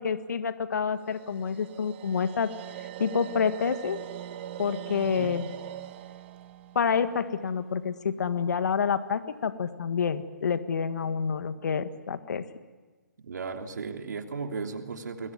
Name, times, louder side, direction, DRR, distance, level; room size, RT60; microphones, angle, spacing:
voice 1, 0.0-2.5 3.0-4.0 4.6-5.4 6.8-12.4, left 6 dB, 65° left, 10 dB, 1.7 m, -28 dB
sound 1, 1.0-8.1, right 11 dB, 35° right, 1.4 m, -42 dB
voice 2, 13.2-15.3, right 4 dB, 70° right, 4 dB, 3.1 m, -35 dB
26.5 x 21.5 x 9.6 m, 1.3 s
hypercardioid pair, 145°, 10 cm